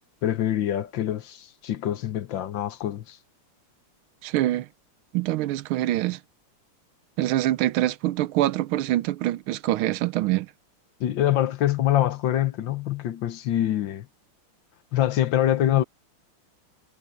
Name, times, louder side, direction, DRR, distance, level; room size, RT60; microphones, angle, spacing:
voice 1, 0.2-3.2 11.0-14.1 14.9-15.8, left 12 dB, 70° left, 1.6 m, -25 dB
voice 2, 4.2-4.7 5.1-6.2 7.2-10.5, right 15 dB, 90° right, 1.5 m, -25 dB
omnidirectional pair, 2.3 m